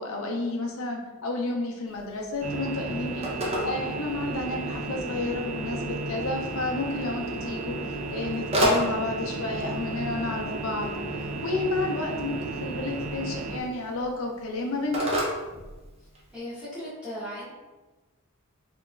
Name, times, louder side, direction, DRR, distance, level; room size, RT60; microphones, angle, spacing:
voice 1, 0.0-15.0, left 2 dB, 70° left, 1 dB, 0.6 m, -31 dB
Telephone, 1.9-16.4, equal, 30° right, 0.6 m, -34 dB
sound 1, 2.4-13.6, right 2 dB, 90° right, 0.4 m, -33 dB
voice 2, 16.3-17.5, equal, 5° right, -11 dB, 1.0 m, -37 dB
3.4 x 2.9 x 2.3 m, 1.2 s
head